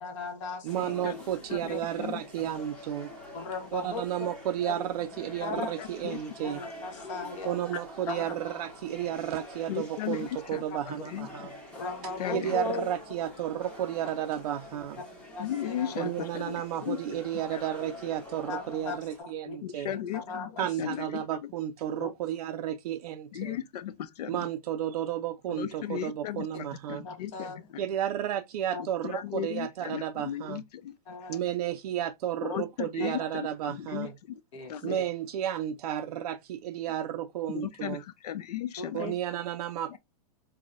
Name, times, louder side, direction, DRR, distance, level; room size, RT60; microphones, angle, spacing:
voice 1, 0.0-1.0 1.7-1.8 3.3-4.0 4.7-4.8 5.4-5.7 6.4-7.6 8.1-8.2 11.8-12.9 15.4-16.1 18.5-19.6 19.9-20.7 22.0-22.1 27.0-27.7 28.7-28.8 31.1-31.4 34.5-35.0 38.8-39.1, left 4 dB, 50° left, 1.1 m, -37 dB
sound 1, 0.6-19.2, left 1 dB, 5° left, 0.8 m, -46 dB
voice 2, 0.6-3.1 3.7-6.6 7.4-11.5 12.3-15.0 16.0-19.9 20.6-23.6 24.3-27.1 27.8-30.6 31.3-34.2 34.8-38.0 38.9-40.0, right 11 dB, 70° right, 0.4 m, -32 dB
voice 3, 1.5-2.2 5.5-6.2 9.7-10.3 10.9-11.3 12.2-12.5 15.4-17.0 17.5-17.6 19.6-20.5 20.8-21.1 23.3-24.4 25.5-26.5 26.9-27.5 29.0-30.9 32.4-32.6 33.0-34.1 34.7-35.0 37.5-38.0 38.2-39.1, left 11 dB, 80° left, 0.6 m, -36 dB
3.9 x 2.1 x 2.4 m
supercardioid pair, 155°, 20 cm